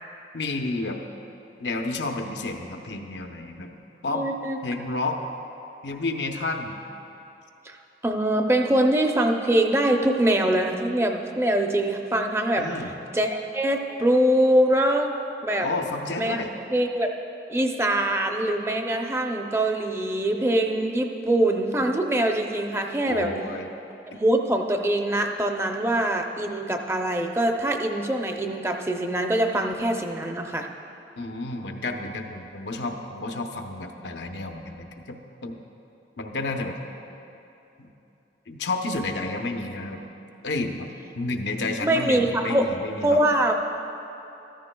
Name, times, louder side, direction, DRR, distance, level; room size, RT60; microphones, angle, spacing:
voice 1, 0.3-1.0 1.6-3.8 4.0-4.2 4.6-5.2 5.8-6.8 12.6-12.9 15.6-16.5 23.0-23.7 31.2-35.6 36.2-36.8 37.8-37.9 38.5-40.0 40.4-40.9 41.1-43.2, left 2 dB, 85° left, 3 dB, 0.8 m, -30 dB
voice 2, 4.1-4.6 7.7-7.8 8.0-12.6 13.1-15.1 15.4-15.7 16.2-16.4 16.7-17.1 17.5-23.3 24.1-30.7 41.6-42.8 43.0-43.5, right 1 dB, 15° right, 3 dB, 0.5 m, -23 dB
14.0 x 13.5 x 2.3 m, 2.9 s
head